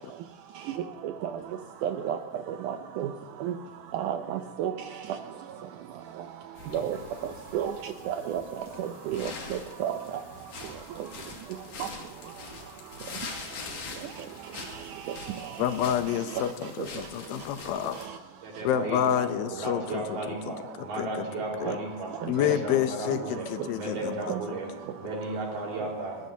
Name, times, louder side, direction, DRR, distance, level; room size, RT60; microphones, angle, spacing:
voice 1, 1.8-2.2 2.6-3.1 3.4-3.5 3.9-4.7 6.7-7.0 7.5-7.7 8.1-8.4 8.8-10.0 24.3-24.4, right 10 dB, 80° right, 6 dB, 1.8 m, -30 dB
sound 1, 6.6-18.1, left 4 dB, 55° left, 3.4 m, -44 dB
voice 2, 15.6-18.0 18.6-21.3 21.6-21.8 22.3-24.3, left 10 dB, 80° left, 9 dB, 2.4 m, -29 dB
voice 3, 18.4-19.3 19.6-26.2, right 2 dB, 60° right, -2 dB, 5.9 m, -35 dB
28.5 x 14.5 x 2.8 m, 1.5 s
omnidirectional pair, 4.4 m